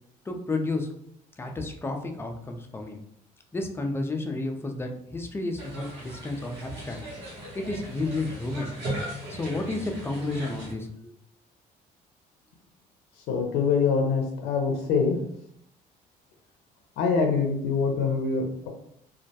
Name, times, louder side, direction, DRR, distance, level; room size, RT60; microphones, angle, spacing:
voice 1, 0.3-0.9 1.4-3.0 3.5-7.0 7.5-8.7 9.3-11.1, left 2 dB, 15° left, 3 dB, 0.4 m, -31 dB
sound 1, 5.6-10.7, right 1 dB, 80° right, 0.9 m, -37 dB
voice 2, 13.3-15.2 17.0-18.7, left 5 dB, 85° left, 2 dB, 0.5 m, -24 dB
2.2 x 2.1 x 2.7 m, 0.70 s
cardioid pair, 110°, 17 cm